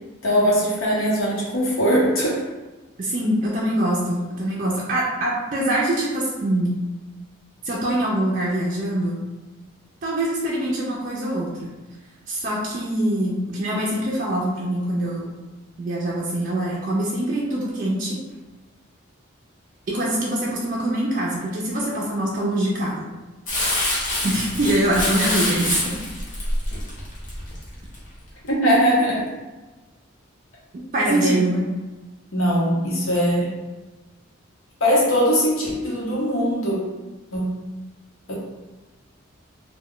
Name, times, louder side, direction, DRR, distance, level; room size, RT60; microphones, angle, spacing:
voice 1, 0.2-2.4 28.5-29.3 31.0-31.4 32.3-33.5 34.8-36.8 37.3-37.5 38.3-38.4, equal, 80° left, -4 dB, 0.9 m, -20 dB
voice 2, 3.0-6.8 7.6-9.2 10.0-11.7 12.3-15.3 15.8-18.2 19.9-23.1 24.2-26.0 30.7-31.6, right 1 dB, 40° right, -4 dB, 0.4 m, -24 dB
Crumpling crinkling, 23.5-28.0 28.5-28.6, left 1 dB, 40° left, 0.8 m, -26 dB
2.3 x 2.2 x 3.6 m, 1.2 s
head